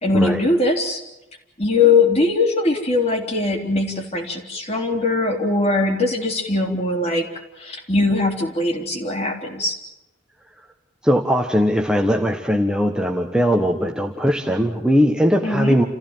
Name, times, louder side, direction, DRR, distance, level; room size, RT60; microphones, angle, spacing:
voice 1, 0.0-1.0 1.6-7.3 7.6-9.8 15.4-15.7, left 3 dB, 30° left, 2 dB, 3.8 m, -20 dB
voice 2, 11.0-15.8, equal, 5° right, 1 dB, 1.3 m, -19 dB
29.0 x 15.5 x 9.1 m, 0.95 s
head